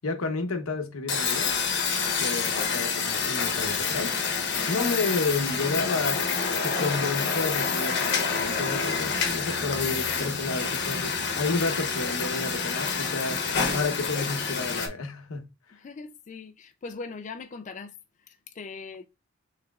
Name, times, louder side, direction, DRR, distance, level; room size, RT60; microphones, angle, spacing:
voice 1, 0.0-1.5 2.2-6.2 6.6-15.4, left 3 dB, 85° left, 0.9 m, -31 dB
sound 1, 1.1-14.9, left 5 dB, 55° left, 1.0 m, -28 dB
sound 2, 8.3-13.0, left 1 dB, 15° right, 1.8 m, -48 dB
voice 2, 15.8-17.9 18.6-19.1, left 4 dB, 35° left, 0.3 m, -40 dB
6.0 x 3.3 x 2.3 m
head